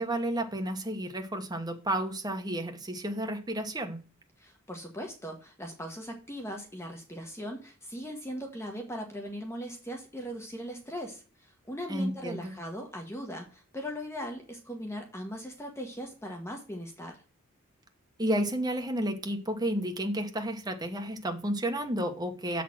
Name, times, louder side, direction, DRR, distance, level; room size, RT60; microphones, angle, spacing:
voice 1, 0.0-4.0 11.9-12.5 18.2-22.6, right 1 dB, 20° right, 4 dB, 1.2 m, -31 dB
voice 2, 4.4-17.2, equal, 15° left, 2 dB, 1.2 m, -39 dB
7.2 x 4.2 x 6.0 m, 0.36 s
head